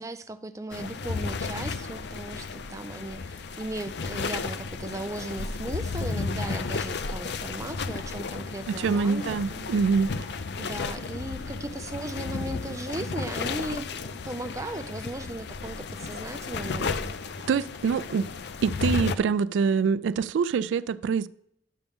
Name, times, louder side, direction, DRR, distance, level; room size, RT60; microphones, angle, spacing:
voice 1, 0.0-9.7 10.6-17.2, right 2 dB, 20° right, 0.5 m, -37 dB
sound 1, 0.7-19.2, left 4 dB, 65° left, 0.5 m, -33 dB
voice 2, 8.7-10.1 17.5-18.3 18.6-21.3, right 5 dB, 85° right, 0.3 m, -25 dB
12.0 x 6.9 x 3.6 m
head